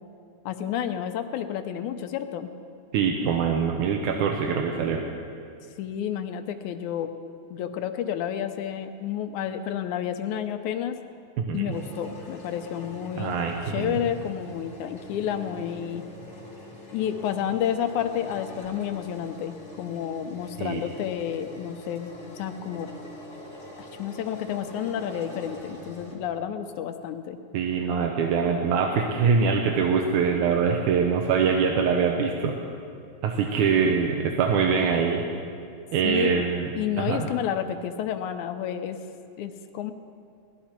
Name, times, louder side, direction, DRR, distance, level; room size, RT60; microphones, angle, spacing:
voice 1, 0.5-2.5 5.8-7.1 7.5-11.0 11.5-13.4 13.7-16.0 16.9-22.9 23.8-27.4 36.0-36.4 36.7-39.0 39.4-39.9, left 9 dB, 85° left, 8 dB, 2.1 m, -30 dB
voice 2, 2.9-5.0 11.4-11.6 13.2-14.0 20.6-20.8 27.5-32.6 33.2-35.2 35.9-36.7 37.0-37.3, right 6 dB, 85° right, 2 dB, 2.3 m, -24 dB
sound 1, 11.7-26.2, left 1 dB, 25° left, 2.9 m, -44 dB
19.0 x 12.5 x 4.4 m, 2.4 s
omnidirectional pair, 3.4 m